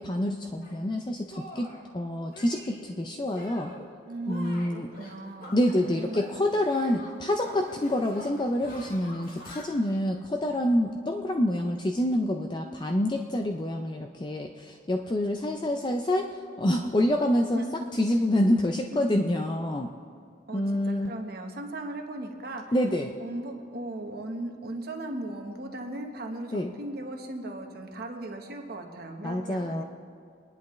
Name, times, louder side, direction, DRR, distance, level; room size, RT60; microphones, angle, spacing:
voice 1, 0.0-1.7 1.9-3.7 4.3-4.9 5.5-17.6 17.9-19.9 20.5-21.1 22.7-23.2 26.5-26.7 29.2-29.8, left 1 dB, 25° left, 3 dB, 0.5 m, -27 dB
Shatter, 0.6-0.8 1.3-1.8 2.3-2.9 3.3-3.9 4.2-6.4 6.7-9.6, equal, 50° left, 2.1 m, -46 dB
voice 2, 4.1-6.4 17.5-17.7 18.9-19.0 20.5-22.6 23.2-29.8, right 2 dB, 50° right, 3 dB, 1.2 m, -37 dB
23.0 x 10.5 x 3.2 m, 2.3 s
head